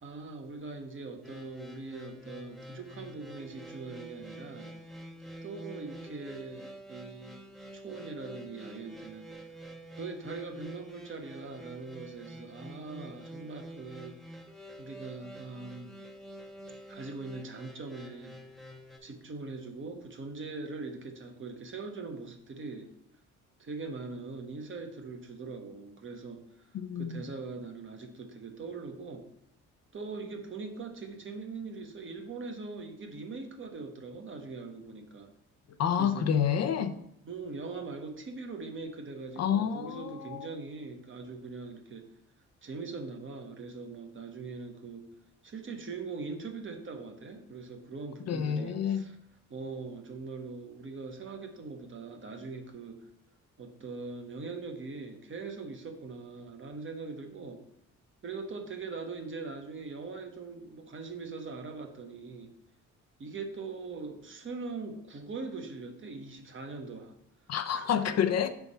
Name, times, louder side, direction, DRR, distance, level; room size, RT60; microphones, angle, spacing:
voice 1, 0.0-4.7 5.4-7.4 7.7-9.5 10.0-14.2 14.8-15.9 16.9-18.4 19.0-22.9 23.6-26.4 26.7-29.3 29.9-35.3 36.0-36.3 37.2-42.1 42.6-45.0 45.4-49.2 49.5-53.1 53.6-57.6 58.2-62.5 63.2-67.1 67.7-67.9, right 4 dB, 40° right, 1.1 m, -41 dB
sound 1, 1.2-19.0, right 1 dB, ahead, 0.8 m, -47 dB
voice 2, 26.7-27.2 35.8-36.9 39.4-40.5 48.3-49.0 67.5-68.5, left 8 dB, 60° left, 0.6 m, -28 dB
5.8 x 3.5 x 5.5 m
cardioid pair, 90°, 30 cm